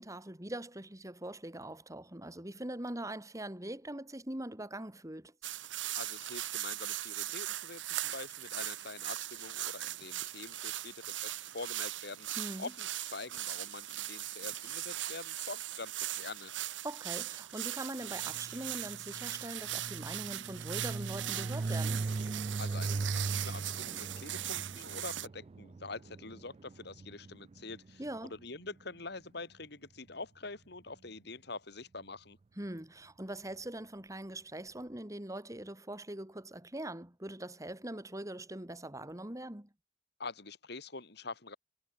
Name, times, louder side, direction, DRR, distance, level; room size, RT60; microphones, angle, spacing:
voice 1, 0.0-5.3 12.4-12.7 16.8-22.1 28.0-28.3 32.6-39.7, right 1 dB, 20° right, 2.3 m, -42 dB
sound 1, 5.4-25.3, right 14 dB, 85° right, 1.2 m, -39 dB
voice 2, 6.0-12.3 12.6-16.7 22.6-28.0 28.3-32.4 40.2-41.6, left 3 dB, 60° left, 3.0 m, -45 dB
sound 2, 18.2-28.2, right 3 dB, 35° right, 0.3 m, -39 dB
head